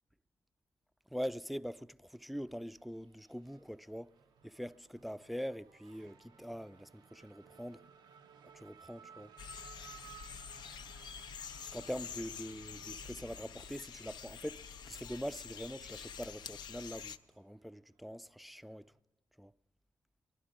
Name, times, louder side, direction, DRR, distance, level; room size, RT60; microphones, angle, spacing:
voice 1, 1.1-4.1 4.4-7.8 8.5-9.3 11.7-18.9 19.4-19.5, equal, ahead, 0.3 m, -43 dB
Race car auto racing / Accelerating revving vroom, 2.0-19.0, right 8 dB, 80° right, 0.4 m, -60 dB
sound 1, 9.4-17.2, left 7 dB, 75° left, 0.4 m, -47 dB
19.5 x 11.0 x 3.8 m
supercardioid pair, 45°, 7 cm